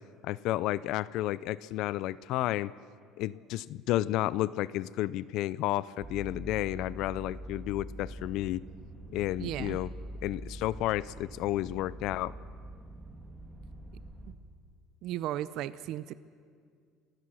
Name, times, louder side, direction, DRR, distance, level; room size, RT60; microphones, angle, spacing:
voice 1, 0.2-2.7 3.2-8.6 9.1-9.9 10.2-12.3, left 15 dB, 65° left, 19 dB, 0.5 m, -31 dB
sound 1, 6.0-14.3, right 1 dB, 20° right, 1.8 m, -44 dB
voice 2, 9.4-9.8 14.3-14.4 15.0-16.1, right 13 dB, 65° right, 16 dB, 0.6 m, -35 dB
28.5 x 16.0 x 6.3 m, 2.1 s
cardioid pair, 135°, 0 cm